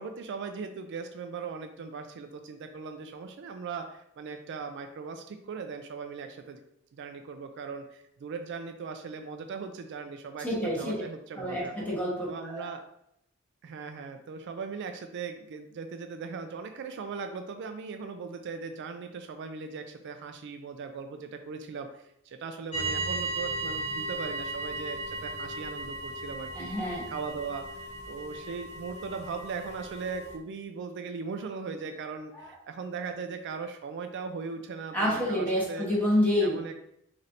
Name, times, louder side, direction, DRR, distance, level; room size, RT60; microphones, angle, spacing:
voice 1, 0.0-6.6 6.9-10.5 10.8-11.7 12.3-12.8 13.6-27.6 28.1-35.9 36.4-36.9, right 5 dB, 60° right, 6 dB, 0.3 m, -39 dB
voice 2, 10.4-10.9 11.3-12.7 26.5-27.1 32.3-32.5 34.9-36.6, left 1 dB, 10° left, -5 dB, 1.2 m, -28 dB
sound 1, 22.7-30.4, right 2 dB, 35° left, 0.6 m, -36 dB
4.0 x 3.2 x 2.6 m, 0.76 s
head